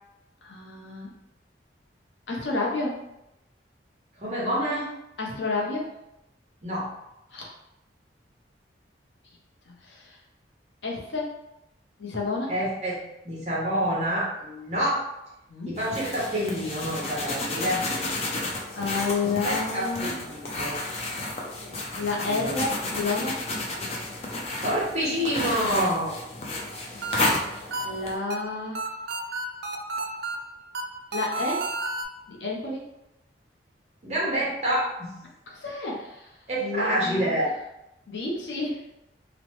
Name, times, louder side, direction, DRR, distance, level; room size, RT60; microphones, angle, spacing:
voice 1, 0.4-1.1 2.3-3.1 5.2-5.9 7.3-7.5 9.7-10.2 10.8-11.4 12.0-12.5 15.5-15.8 18.8-20.2 22.0-23.4 27.1-28.8 31.1-31.7 32.3-32.9 35.5-36.3 36.6-37.4 38.1-38.8, left 3 dB, 85° left, -2 dB, 0.7 m, -30 dB
voice 2, 4.2-4.9 6.6-6.9 12.5-13.0 13.2-15.0 15.6-17.9 18.4-18.5 19.2-20.8 21.9-22.6 24.6-26.2 34.0-35.1 36.5-37.5, equal, 40° right, -5 dB, 0.9 m, -28 dB
sound 1, 15.8-28.2, left 2 dB, 35° left, 0.4 m, -32 dB
sound 2, 26.7-32.0, right 2 dB, 60° right, 0.3 m, -33 dB
2.9 x 2.1 x 3.0 m, 0.88 s
head